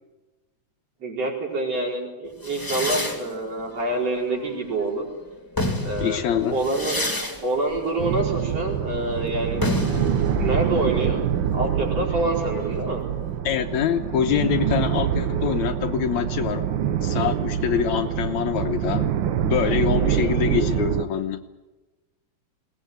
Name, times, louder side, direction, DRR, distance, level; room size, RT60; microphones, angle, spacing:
voice 1, 1.0-5.0 5.8-7.0 7.4-9.6 10.4-11.2 11.5-13.0 20.0-20.3, right 2 dB, 50° right, -1 dB, 6.0 m, -27 dB
sound 1, 2.4-4.9 5.3-12.9, left 1 dB, 5° left, 2.6 m, -31 dB
voice 2, 6.0-6.6 13.4-16.7 17.0-19.1 19.4-21.4, left 9 dB, 70° left, 8 dB, 2.2 m, -25 dB
sound 2, 8.0-21.0, right 9 dB, 90° right, 1.0 m, -25 dB
21.5 x 19.0 x 9.3 m, 1.2 s
omnidirectional pair, 3.5 m